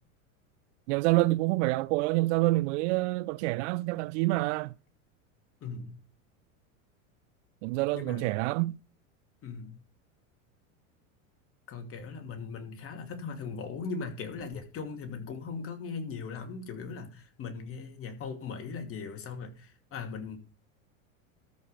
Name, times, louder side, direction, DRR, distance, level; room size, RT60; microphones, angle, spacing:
voice 1, 0.9-4.7 7.6-8.8, right 20 dB, 60° right, 0.5 m, -27 dB
voice 2, 5.6-6.0 7.9-8.3 9.4-9.8 11.7-20.4, left 5 dB, 35° left, 2.6 m, -39 dB
13.5 x 5.3 x 6.6 m
supercardioid pair, 125°, 40 cm